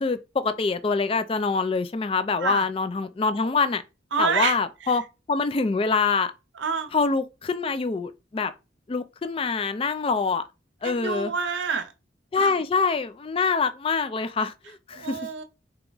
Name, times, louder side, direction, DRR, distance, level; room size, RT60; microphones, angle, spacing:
voice 1, 0.0-3.8 4.2-5.0 5.3-6.3 6.9-8.5 8.9-10.4 10.8-11.3 12.3-15.2, left 4 dB, 30° left, 0.3 m, -25 dB
voice 2, 4.1-4.6 6.6-6.9 10.8-11.9 12.4-12.5 15.0-15.4, right 5 dB, 70° right, 0.6 m, -27 dB
3.4 x 2.9 x 3.9 m
head